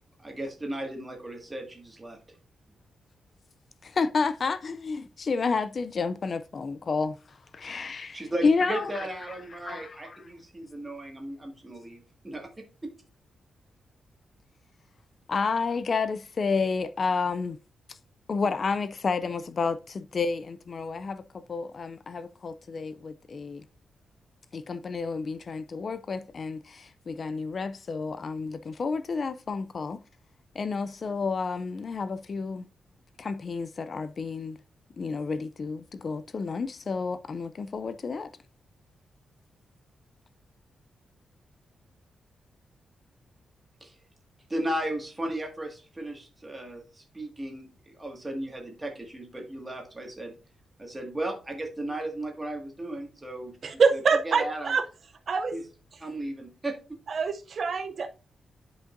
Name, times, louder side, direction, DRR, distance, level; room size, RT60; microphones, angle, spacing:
voice 1, 0.2-2.2 8.1-12.5 12.8-12.9 43.8-44.0 44.5-47.6 47.9-50.4 50.8-53.5 53.9-54.0 54.2-54.7 55.5-55.6 56.0-57.0, right 1 dB, 15° right, 1.8 m, -35 dB
voice 2, 3.8-9.1 9.6-10.2 15.3-17.6 17.9-18.0 18.3-23.6 24.5-30.0 30.6-32.7 33.2-34.6 35.0-38.3, left 4 dB, 40° left, 0.3 m, -30 dB
voice 3, 53.6-54.9 55.3-55.6 57.1-58.1, right 5 dB, 50° right, 0.5 m, -25 dB
11.0 x 5.2 x 2.5 m
wide cardioid pair, 160°, 0 cm